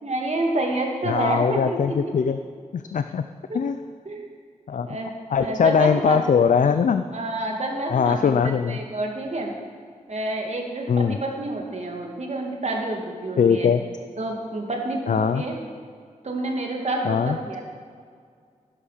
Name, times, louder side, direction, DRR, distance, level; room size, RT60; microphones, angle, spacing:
voice 1, 0.0-2.0 3.5-3.7 4.1-4.3 4.8-5.1 5.4-6.2 7.1-9.5 10.1-13.7 14.2-15.5 16.2-17.6, right 2 dB, 55° right, 1 dB, 2.3 m, -28 dB
voice 2, 1.0-2.4 2.7-3.2 3.5-3.8 4.7-4.9 5.3-7.0 7.9-8.8 10.9-11.2 13.4-13.8 15.1-15.5 17.0-17.4, left 6 dB, 70° left, 9 dB, 0.5 m, -21 dB
12.0 x 10.5 x 5.1 m, 2.1 s
cardioid pair, 50°, 14 cm